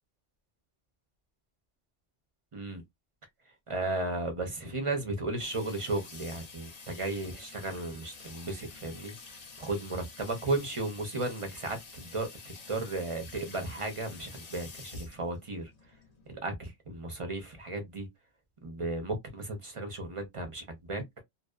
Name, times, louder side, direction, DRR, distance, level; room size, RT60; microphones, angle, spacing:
voice 1, 2.5-2.8 3.7-9.1 9.6-15.7 16.3-18.1 18.6-21.2, right 2 dB, 35° right, 0.5 m, -35 dB
Water tap faucet / Sink (filling or washing), 5.4-16.3, left 4 dB, 45° left, 0.5 m, -49 dB
2.6 x 2.0 x 2.3 m
omnidirectional pair, 1.3 m